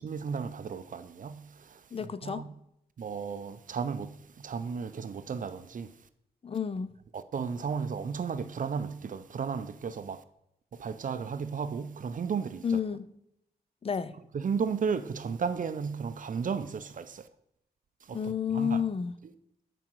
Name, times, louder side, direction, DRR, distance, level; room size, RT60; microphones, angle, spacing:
voice 1, 0.0-1.8 2.2-2.5 3.0-5.9 7.1-10.2 10.8-12.6 14.3-17.3 18.1-18.8, right 6 dB, 55° right, 0.6 m, -34 dB
voice 2, 1.9-2.5 6.4-7.0 12.6-13.1 13.8-14.1 18.1-19.1, left 7 dB, 35° left, 0.5 m, -30 dB
13.0 x 5.1 x 4.6 m
wide cardioid pair, 120°, 17 cm